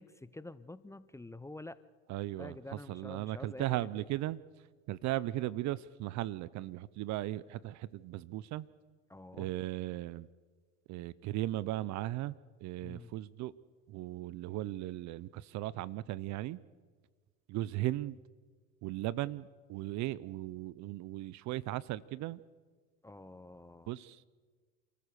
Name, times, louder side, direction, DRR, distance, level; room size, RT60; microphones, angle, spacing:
voice 1, 0.0-1.8 2.4-4.1 9.1-9.5 12.8-13.1 23.0-23.9, left 2 dB, 10° left, 15 dB, 0.7 m, -48 dB
voice 2, 2.1-2.5 2.9-4.4 4.9-8.7 9.4-10.3 10.9-12.3 12.6-13.5 13.9-16.6 17.5-18.2 18.8-22.4 23.9-24.3, right 15 dB, 50° right, 21 dB, 0.7 m, -37 dB
28.5 x 14.5 x 6.8 m, 1.5 s
hypercardioid pair, 90°, 37 cm